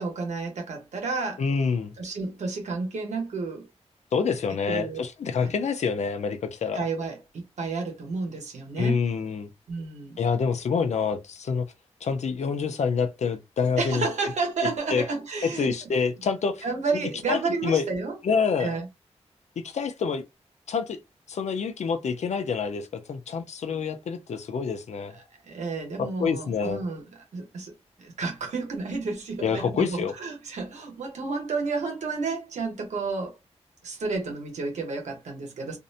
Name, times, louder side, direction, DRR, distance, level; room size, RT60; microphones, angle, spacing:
voice 1, 0.0-1.4 2.0-3.7 4.7-5.0 5.4-5.5 6.7-9.0 9.7-10.2 13.8-15.9 16.6-18.2 18.6-18.9 25.1-27.0 27.3-33.4 33.8-35.8, right 4 dB, 90° right, 1.0 m, -31 dB
voice 2, 1.4-1.9 4.1-6.8 8.8-9.5 10.2-11.7 12.0-14.1 14.9-15.0 15.4-16.6 16.9-17.0 17.3-17.8 18.2-18.7 19.6-20.2 20.7-21.0 21.3-25.2 26.0-26.8 29.4-30.1, left 5 dB, 75° left, 0.5 m, -27 dB
2.6 x 2.0 x 2.6 m
wide cardioid pair, 115°, 12 cm